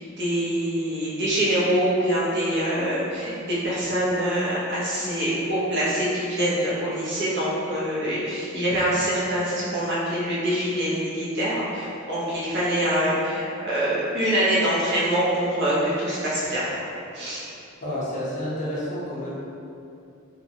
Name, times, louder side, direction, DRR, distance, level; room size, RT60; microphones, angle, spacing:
voice 1, 0.0-16.6 17.1-17.4, right 1 dB, 55° right, -8 dB, 0.7 m, -25 dB
voice 2, 17.8-19.4, left 1 dB, 35° left, -9 dB, 0.6 m, -30 dB
2.4 x 2.0 x 2.7 m, 2.6 s
head